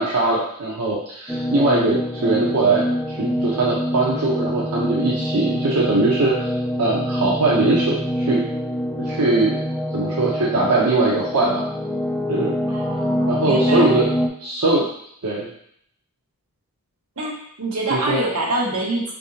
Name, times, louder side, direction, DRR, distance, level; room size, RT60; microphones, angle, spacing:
voice 1, 0.0-2.9 3.2-6.5 6.8-8.4 9.0-9.6 9.9-11.6 12.3-12.6 13.3-14.1 14.4-14.9 15.2-15.5 17.9-18.2, right 2 dB, 90° right, -5 dB, 0.7 m, -21 dB
sound 1, 1.3-14.3, equal, 5° left, 0.5 m, -25 dB
voice 2, 12.7-13.9 17.2-19.1, right 2 dB, 70° right, -3 dB, 1.2 m, -25 dB
4.8 x 3.5 x 2.7 m, 0.67 s
head